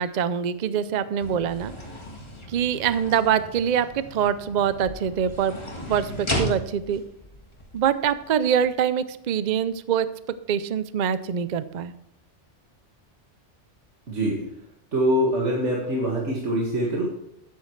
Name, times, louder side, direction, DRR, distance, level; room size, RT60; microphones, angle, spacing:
voice 1, 0.0-1.7 2.5-5.5 5.9-7.0 7.7-10.1 10.5-11.9, right 8 dB, 50° right, 13 dB, 0.6 m, -24 dB
sound 1, 1.2-8.7, equal, 25° left, 1.8 m, -35 dB
voice 2, 14.1-14.4 14.9-17.0, equal, 75° right, -3 dB, 2.3 m, -24 dB
13.0 x 9.4 x 3.2 m, 0.80 s
omnidirectional pair, 1.2 m